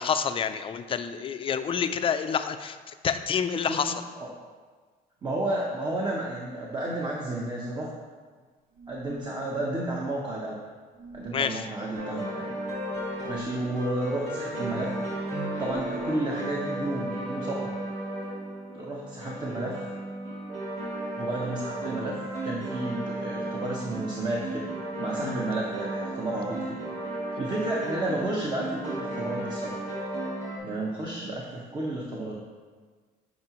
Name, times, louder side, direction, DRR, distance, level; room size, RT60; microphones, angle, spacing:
voice 1, 0.0-4.0 11.3-11.7 25.2-25.4, left 7 dB, 30° left, 9 dB, 0.4 m, -28 dB
voice 2, 3.7-4.3 5.2-7.9 8.9-10.6 11.1-12.5 13.2-14.9 15.6-17.7 18.7-19.7 21.1-22.2 22.4-24.7 25.0-26.8 27.4-29.8 30.6-32.4, right 1 dB, 25° right, -3 dB, 1.0 m, -32 dB
sound 1, 8.7-9.4 10.9-11.6 13.2-13.8 15.6-16.3, right 3 dB, 90° right, 1.1 m, -43 dB
sound 2, 11.9-30.6, right 1 dB, 45° right, 1.9 m, -34 dB
9.4 x 4.9 x 3.0 m, 1.5 s
cardioid pair, 110°, 17 cm